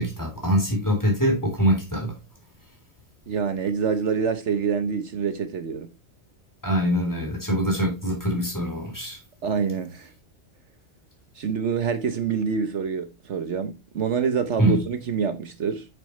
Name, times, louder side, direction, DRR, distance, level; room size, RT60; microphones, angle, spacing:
voice 1, 0.0-2.1 6.6-9.2 14.6-14.8, equal, 15° left, 3.5 m, -23 dB
voice 2, 3.3-5.9 9.4-10.1 11.3-15.9, right 6 dB, 65° right, 1.2 m, -26 dB
8.7 x 7.3 x 3.1 m
omnidirectional pair, 1.3 m